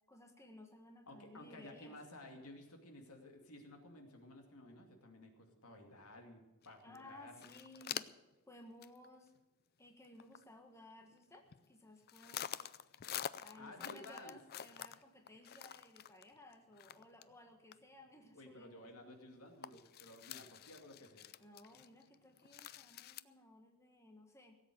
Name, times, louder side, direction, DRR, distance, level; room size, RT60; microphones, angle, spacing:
voice 1, 0.1-2.0 6.8-8.1 8.5-9.3 9.8-12.7 13.4-18.9 21.4-24.6, left 1 dB, 15° left, 3 dB, 1.4 m, -58 dB
voice 2, 1.1-7.5 13.5-14.4 18.3-21.3, left 1 dB, 75° left, 3 dB, 2.6 m, -55 dB
sound 1, 6.6-6.7 6.9-7.0 7.3-8.3 8.8-9.1 9.4-9.5 9.9-10.4 11.1-11.7 12.1-17.4 17.7-17.8 18.2-18.3 18.8-18.9 19.2-19.3 19.6-23.2, left 10 dB, 45° left, 0.4 m, -47 dB
17.5 x 8.1 x 7.8 m, 1.1 s
head